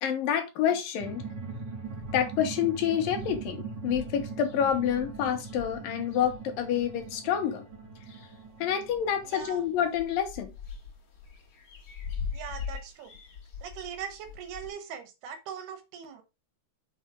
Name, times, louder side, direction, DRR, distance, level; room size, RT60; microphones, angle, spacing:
voice 1, 0.0-1.2 2.1-7.6 8.6-10.5, left 9 dB, 70° left, 2.8 m, -28 dB
sound 1, 1.0-10.2, right 4 dB, 50° right, 1.3 m, -41 dB
sound 2, 1.9-2.5 2.8-2.9 3.1-7.2 7.7-8.6 8.8-14.7, left 6 dB, 45° left, 2.7 m, -42 dB
voice 2, 9.2-9.6 12.3-13.1 13.6-16.2, right 8 dB, 90° right, 3.5 m, -40 dB
7.3 x 4.3 x 5.1 m
omnidirectional pair, 4.4 m